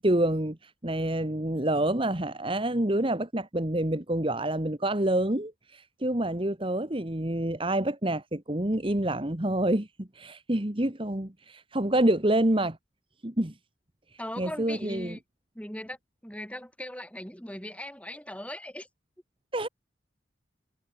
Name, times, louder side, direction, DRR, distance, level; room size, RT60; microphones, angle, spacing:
voice 1, 0.0-12.8 13.2-13.5 14.4-15.2 19.5-19.7, right 1 dB, 30° right, 1.6 m, -27 dB
voice 2, 14.2-15.2 15.5-16.0 16.2-18.9, left 1 dB, 5° left, 7.4 m, -39 dB
head